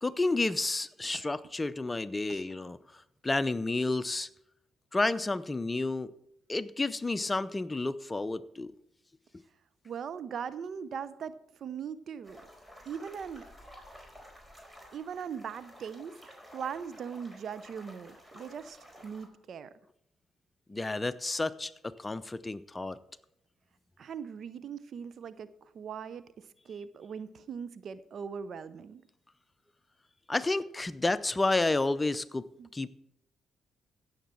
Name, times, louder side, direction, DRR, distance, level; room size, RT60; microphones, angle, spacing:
voice 1, 0.0-4.3 4.9-6.1 6.5-8.7 20.7-23.0 30.3-32.5 32.7-32.9, left 2 dB, 25° left, 15 dB, 0.6 m, -31 dB
voice 2, 9.8-11.3 11.6-12.5 12.9-13.4 14.9-19.7 24.0-25.5 25.7-29.0 32.6-32.7, right 7 dB, 60° right, 15 dB, 0.6 m, -40 dB
sound 1, 12.2-19.3, equal, 15° right, 4.4 m, -52 dB
16.0 x 7.3 x 4.5 m, 0.79 s
hypercardioid pair, 45°, 0 cm